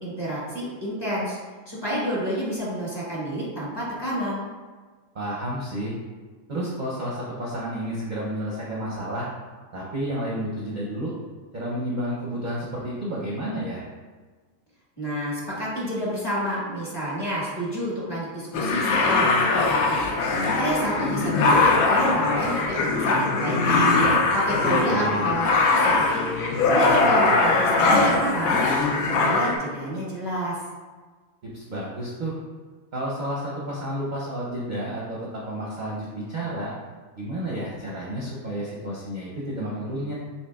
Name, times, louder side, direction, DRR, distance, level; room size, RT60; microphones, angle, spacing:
voice 1, 0.0-1.4 1.7-4.4 15.0-20.0 20.4-26.2 26.6-28.6 29.0-30.6, equal, 20° left, -7 dB, 1.2 m, -29 dB
voice 2, 5.1-5.9 6.5-9.3 9.7-11.1 11.5-13.8 24.9-25.3 31.4-32.4 32.9-36.7 37.2-40.1, right 1 dB, 45° right, -5 dB, 0.6 m, -31 dB
sound 1, 18.5-29.6, left 3 dB, 90° left, 1.0 m, -21 dB
6.9 x 2.9 x 2.3 m, 1.4 s
omnidirectional pair, 1.4 m